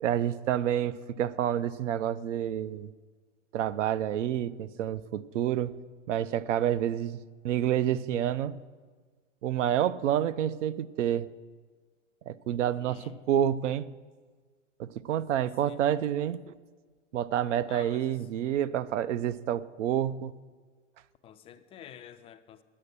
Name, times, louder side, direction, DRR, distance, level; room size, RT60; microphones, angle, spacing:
voice 1, 0.0-2.9 3.5-5.8 6.1-7.2 7.4-8.6 9.4-11.3 12.3-13.9 14.8-16.5 17.1-20.3, right 10 dB, 70° right, 0.6 m, -28 dB
voice 2, 12.6-13.2 15.6-15.8 17.7-18.3 21.2-22.6, left 10 dB, 15° left, 0.3 m, -50 dB
9.7 x 8.7 x 6.7 m
hypercardioid pair, 110°, 38 cm